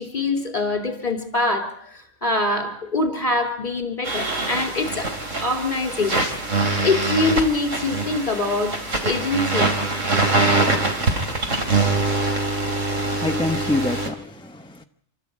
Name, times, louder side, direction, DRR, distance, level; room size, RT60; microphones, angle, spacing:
voice 1, 0.0-6.2 6.8-8.7 9.0-9.7 11.1-11.2, left 2 dB, 35° left, 3.9 m, -24 dB
sound 1, 4.0-14.1, right 3 dB, 90° right, 3.5 m, -23 dB
voice 2, 12.6-14.8, left 2 dB, 5° left, 0.8 m, -27 dB
28.0 x 13.5 x 8.7 m
omnidirectional pair, 1.3 m